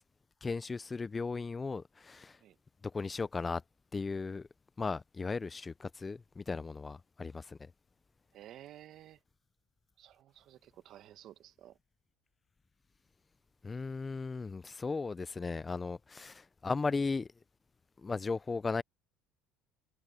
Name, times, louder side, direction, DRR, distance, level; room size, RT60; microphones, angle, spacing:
voice 1, 0.4-2.4 2.8-3.6 3.9-4.5 4.8-7.7 13.6-17.3 18.0-18.8, left 4 dB, 20° left, 0.4 m, -36 dB
voice 2, 8.3-9.2 10.0-11.8, right 12 dB, 55° right, 1.3 m, -53 dB
cardioid pair, 115°, 0 cm